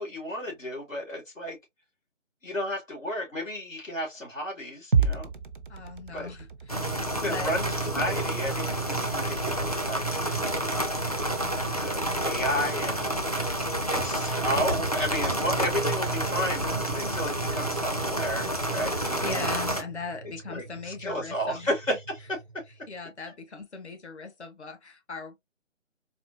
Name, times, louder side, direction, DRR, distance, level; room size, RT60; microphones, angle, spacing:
voice 1, 0.0-1.6 2.4-5.3 6.1-6.3 7.2-10.1 10.6-10.9 11.8-13.0 13.9-19.4 20.5-22.4, equal, 85° left, 2.5 m, -32 dB
sound 1, 4.9-23.1, right 5 dB, 45° right, 0.4 m, -37 dB
voice 2, 5.7-7.5 19.2-21.7 22.9-25.4, left 4 dB, 60° left, 1.2 m, -39 dB
sound 2, 6.7-19.8, right 1 dB, 30° left, 0.4 m, -29 dB
4.1 x 2.2 x 2.6 m
figure-of-eight pair, 155°, 38 cm